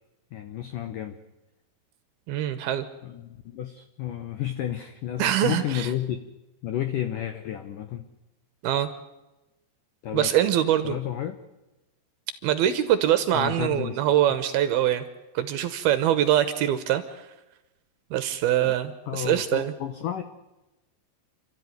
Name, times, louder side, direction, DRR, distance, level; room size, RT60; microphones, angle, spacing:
voice 1, 0.3-1.2 3.0-6.3 6.6-8.1 10.0-10.4 10.8-11.4 13.3-14.0 18.6-18.7 19.1-20.2, left 11 dB, 90° left, 9 dB, 1.9 m, -31 dB
voice 2, 2.3-2.9 5.2-5.9 8.6-8.9 10.1-11.0 12.4-15.0 15.3-17.2 18.1-19.7, right 11 dB, 70° right, 11 dB, 2.5 m, -23 dB
28.0 x 13.5 x 9.4 m, 1.0 s
omnidirectional pair, 5.2 m